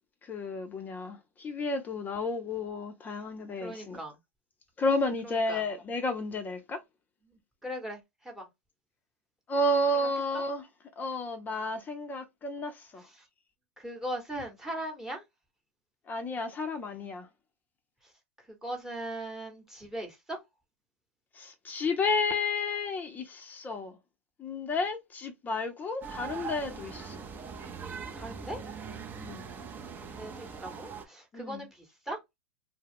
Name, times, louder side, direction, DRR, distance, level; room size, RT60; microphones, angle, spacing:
voice 1, 0.2-4.0 4.8-6.8 9.5-10.6 11.0-13.0 16.1-17.3 21.4-23.9 24.4-27.2 29.2-29.5 31.3-31.7, left 2 dB, 20° left, 0.5 m, -32 dB
voice 2, 3.6-4.1 5.2-5.6 7.6-8.5 13.0-13.2 13.8-15.2 18.6-20.4 28.1-28.6 30.0-32.2, right 1 dB, 5° right, 1.0 m, -39 dB
sound 1, 26.0-31.0, right 6 dB, 20° right, 0.6 m, -41 dB
2.3 x 2.0 x 3.4 m
hypercardioid pair, 110°, 8 cm